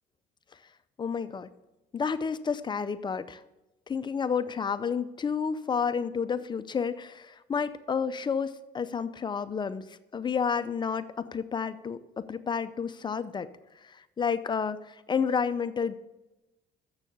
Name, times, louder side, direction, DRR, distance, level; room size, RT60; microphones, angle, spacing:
voice 1, 1.0-1.5 1.9-3.4 3.9-9.9 10.1-13.5 13.8-16.0, left 6 dB, 25° left, 13 dB, 0.5 m, -30 dB
7.3 x 6.9 x 6.6 m, 1.0 s
cardioid pair, 110°, 17 cm